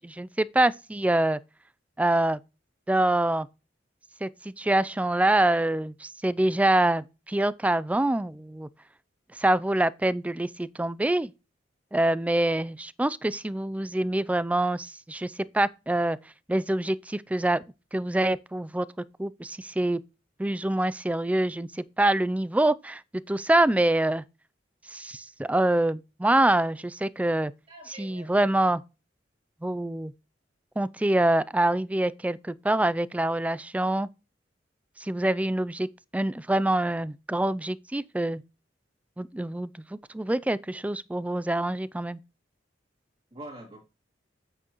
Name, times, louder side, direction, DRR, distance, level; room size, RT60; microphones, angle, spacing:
voice 1, 0.0-1.4 2.0-2.4 2.9-3.5 4.2-8.7 9.4-11.3 11.9-16.2 16.5-17.6 17.9-18.9 19.2-20.0 20.4-23.0 23.3-24.2 24.9-27.5 28.0-28.8 29.6-30.1 30.8-34.1 35.0-35.9 36.1-38.4 39.2-42.2, right 1 dB, 5° right, 0.3 m, -25 dB
voice 2, 27.7-28.3 43.3-43.8, right 1 dB, 30° right, 2.3 m, -44 dB
8.6 x 6.9 x 3.0 m
head